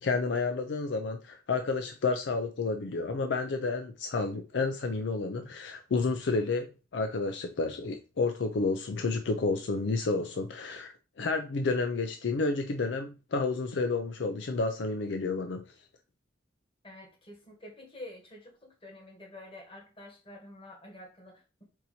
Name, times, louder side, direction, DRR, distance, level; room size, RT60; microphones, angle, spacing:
voice 1, 0.0-15.6, left 3 dB, 65° left, 0.4 m, -30 dB
voice 2, 16.8-21.6, left 1 dB, 30° left, 1.6 m, -48 dB
4.6 x 2.7 x 4.1 m
head